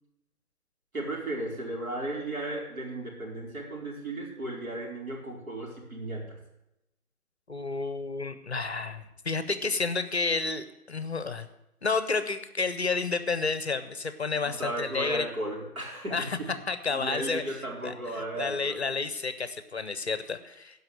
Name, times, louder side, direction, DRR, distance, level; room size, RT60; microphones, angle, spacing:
voice 1, 0.9-6.4 14.4-16.5 16.9-18.8, right 1 dB, 65° right, -2 dB, 4.2 m, -35 dB
voice 2, 7.5-11.5 11.8-15.3 16.1-16.4 16.7-17.4 17.8-17.9 18.4-20.8, left 4 dB, 45° left, 11 dB, 0.8 m, -30 dB
12.5 x 5.5 x 8.8 m, 0.89 s
figure-of-eight pair, 160°, 45 cm